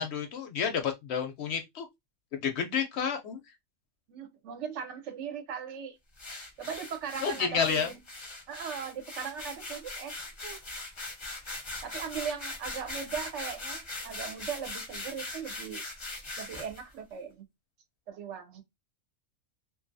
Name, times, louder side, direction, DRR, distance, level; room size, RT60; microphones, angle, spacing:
voice 1, 0.0-1.9 2.4-3.4 7.2-7.9, left 6 dB, 65° left, 0.7 m, -30 dB
voice 2, 4.1-6.0 6.6-8.0 8.5-10.6 11.8-15.8 16.4-17.4 18.1-18.6, right 7 dB, 70° right, 0.9 m, -39 dB
sound 1, 6.2-16.8, left 2 dB, 30° left, 0.6 m, -40 dB
2.5 x 2.3 x 2.5 m
omnidirectional pair, 1.3 m